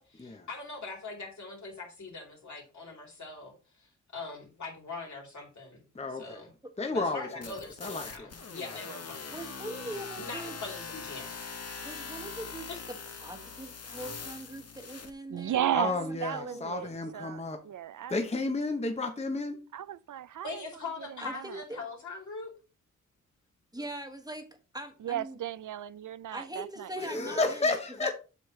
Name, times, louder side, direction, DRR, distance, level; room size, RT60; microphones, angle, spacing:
voice 1, 0.0-5.8 6.1-6.5 6.9-9.3 10.2-11.4 12.7-12.8 20.4-22.5, left 3 dB, 70° left, 3.3 m, -42 dB
voice 2, 5.9-6.4 6.8-7.5 7.8-8.3 15.7-17.6 18.1-19.6 27.0-28.1, left 3 dB, 20° left, 0.7 m, -32 dB
sound 1, 7.4-15.1, left 5 dB, 55° left, 0.9 m, -42 dB
voice 3, 9.3-10.6 11.8-16.7 21.2-21.8 23.7-24.5 24.7-25.4 26.3-28.1, right 1 dB, 10° right, 1.2 m, -42 dB
voice 4, 15.3-15.9 16.2-18.2 19.7-20.6 21.0-21.6 25.0-27.1, right 11 dB, 80° right, 0.5 m, -35 dB
8.1 x 6.5 x 3.1 m
wide cardioid pair, 120°, 30 cm